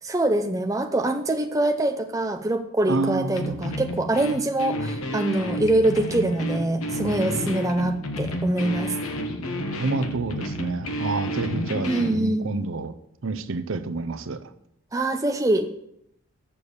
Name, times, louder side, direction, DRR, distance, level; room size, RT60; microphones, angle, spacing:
voice 1, 0.0-9.0 11.9-12.5 14.9-15.7, right 1 dB, 15° right, 5 dB, 0.5 m, -24 dB
voice 2, 2.9-3.7 9.8-12.9 13.2-14.5, right 3 dB, 65° right, 12 dB, 0.6 m, -29 dB
sound 1, 3.3-12.2, equal, 75° left, 1.1 m, -30 dB
7.0 x 6.9 x 6.4 m, 0.75 s
head